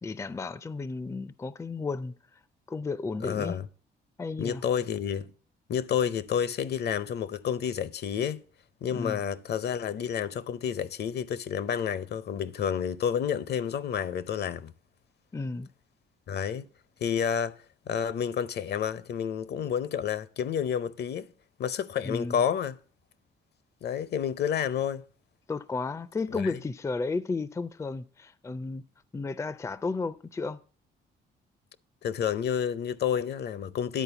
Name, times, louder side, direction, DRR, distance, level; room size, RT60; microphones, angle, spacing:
voice 1, 0.0-2.1 2.7-3.6 4.2-4.6 8.9-9.2 15.3-15.7 22.0-22.4 25.5-28.8 29.1-30.6, left 3 dB, 15° left, 0.4 m, -33 dB
voice 2, 3.2-3.7 4.4-5.3 5.7-8.4 8.8-14.7 16.3-16.7 17.0-17.5 17.9-21.3 21.6-22.8 23.8-25.0 26.3-26.6 32.0-34.0, left 8 dB, 55° left, 0.6 m, -30 dB
10.0 x 4.3 x 6.9 m
cardioid pair, 90°, 20 cm